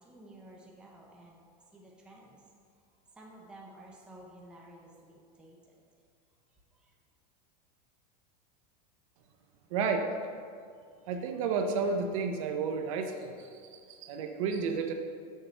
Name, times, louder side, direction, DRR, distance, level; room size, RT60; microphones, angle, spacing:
voice 1, 0.0-2.4 3.1-5.8 6.7-6.9 14.2-14.3, right 1 dB, 5° right, -3 dB, 0.6 m, -53 dB
voice 2, 9.7-10.1 11.1-14.9, right 5 dB, 50° right, 5 dB, 0.7 m, -32 dB
6.6 x 4.6 x 6.7 m, 2.3 s
supercardioid pair, 170°, 21 cm